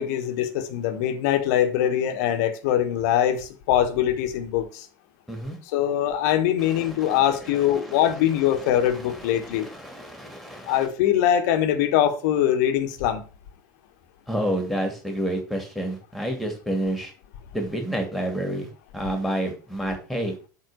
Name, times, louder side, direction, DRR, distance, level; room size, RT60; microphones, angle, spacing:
voice 1, 0.0-4.8 5.7-9.7 10.7-13.2, left 11 dB, 55° left, 1.3 m, -22 dB
voice 2, 6.6-8.1 8.4-10.9 14.3-17.1 17.5-18.7 18.9-20.3, right 1 dB, ahead, 2.6 m, -30 dB
8.1 x 3.6 x 6.4 m
figure-of-eight pair, 75°, 11 cm